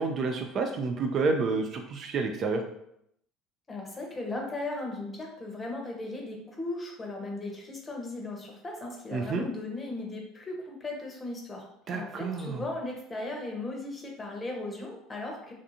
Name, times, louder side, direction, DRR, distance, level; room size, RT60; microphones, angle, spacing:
voice 1, 0.0-2.6 9.1-9.4 11.9-12.6, right 4 dB, 45° right, 4 dB, 0.3 m, -29 dB
voice 2, 3.7-11.6 11.9-15.5, left 2 dB, 20° left, 0 dB, 0.7 m, -37 dB
2.5 x 2.4 x 2.7 m, 0.75 s
supercardioid pair, 95°, 0 cm